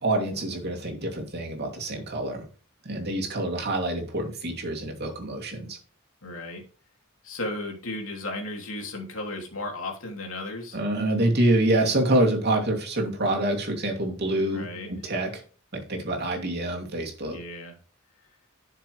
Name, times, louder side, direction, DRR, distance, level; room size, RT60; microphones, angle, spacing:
voice 1, 0.0-2.5 2.8-5.8 10.7-14.6 14.9-15.3 15.7-17.4, right 1 dB, 50° right, 0 dB, 2.6 m, -26 dB
voice 2, 6.2-6.6 7.2-10.8 14.5-14.9 17.3-17.8, left 2 dB, 70° left, 1 dB, 3.0 m, -35 dB
11.5 x 6.7 x 3.2 m, 0.37 s
head